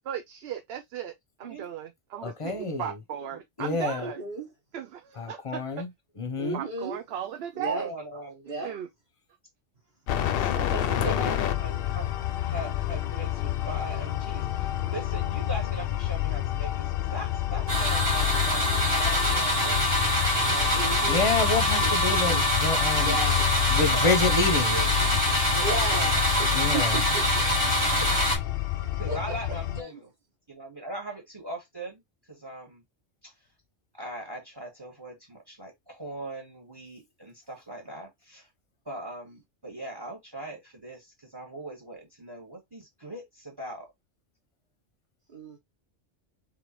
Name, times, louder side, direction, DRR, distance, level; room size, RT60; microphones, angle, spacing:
voice 1, 0.1-1.1 1.4-4.2 4.7-5.6 6.5-7.9 8.5-8.9, right 10 dB, 65° right, 0.7 m, -36 dB
voice 2, 2.2-2.9 3.6-4.0 5.2-5.9 6.2-6.6 10.9-11.2 21.1-23.1 23.7-24.7 26.5-26.9, left 3 dB, 30° left, 0.8 m, -28 dB
voice 3, 4.0-4.5 6.4-7.0 7.5-7.9 8.4-8.7 10.4-11.4 20.7-21.2 21.8-22.4 23.0-23.4 25.6-26.1 26.4-26.9 27.3-27.5 29.1-29.2 29.8-30.0 45.3-45.6, right 2 dB, 45° right, 1.2 m, -34 dB
voice 4, 7.7-8.4 10.4-10.6 11.0-12.1 12.4-19.8 20.5-21.0 23.8-24.1 24.7-25.6 25.9-26.2 28.0-28.4 28.9-30.1 30.5-32.0 32.3-32.8 33.2-33.3 33.9-38.5 38.8-43.9, right 1 dB, 20° right, 1.4 m, -40 dB
sound 1, 10.1-29.8, left 14 dB, 60° left, 0.7 m, -29 dB
sound 2, 17.7-28.4, equal, 90° right, 2.5 m, -25 dB
3.7 x 3.5 x 3.0 m
omnidirectional pair, 1.2 m